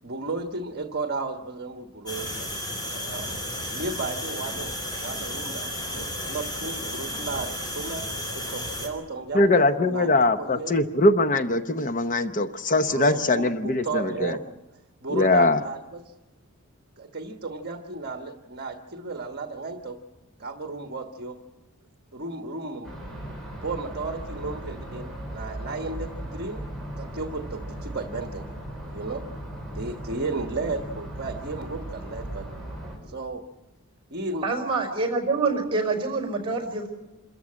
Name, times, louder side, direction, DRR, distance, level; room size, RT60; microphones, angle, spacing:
voice 1, 0.0-2.6 3.0-3.3 3.7-4.7 5.0-10.8 12.9-14.6 15.0-16.1 17.0-20.0 20.4-21.4 22.1-22.9 23.6-26.6 27.0-28.5 28.9-29.3 29.7-32.5 33.1-33.4 34.1-34.5, right 3 dB, 45° right, 5 dB, 1.3 m, -34 dB
sound 1, 2.1-8.9, equal, 20° left, 4.7 m, -33 dB
voice 2, 9.3-14.4 15.1-15.6, left 2 dB, 35° left, 9 dB, 0.8 m, -22 dB
sound 2, 22.8-33.0, right 1 dB, ahead, 6.2 m, -37 dB
voice 3, 34.4-36.9, right 3 dB, 25° right, 5 dB, 5.1 m, -26 dB
27.0 x 14.5 x 8.6 m, 1.0 s
head